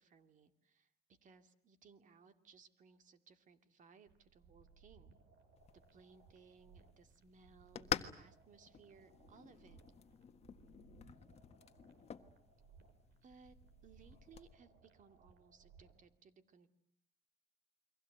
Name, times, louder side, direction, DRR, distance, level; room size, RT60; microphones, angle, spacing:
voice 1, 0.0-5.2 5.7-9.8 13.2-13.6 13.8-16.7, right 5 dB, 50° right, 9 dB, 2.5 m, -64 dB
sound 1, 4.1-16.1, right 5 dB, 80° right, 5.5 m, -65 dB
sound 2, 5.6-14.5, left 7 dB, 40° left, 1.6 m, -48 dB
29.5 x 23.0 x 8.1 m, 0.69 s
cardioid pair, 110°, 17 cm